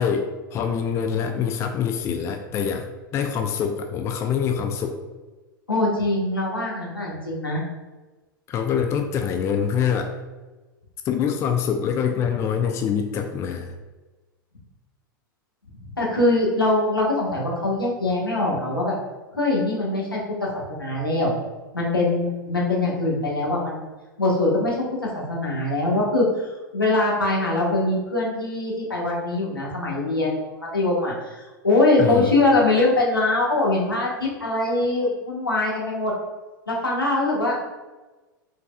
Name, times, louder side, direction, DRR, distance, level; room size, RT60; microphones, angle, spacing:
voice 1, 0.0-2.8 3.1-5.0 8.5-10.1 11.1-13.8 32.0-32.3, left 7 dB, 25° left, 6 dB, 0.3 m, -25 dB
voice 2, 5.7-7.6 16.0-18.9 19.3-21.3 21.7-23.9 24.2-30.4 30.7-36.1 36.7-37.7, left 2 dB, 85° left, -4 dB, 1.2 m, -23 dB
5.2 x 3.9 x 2.2 m, 1.2 s
figure-of-eight pair, 90°, 11 cm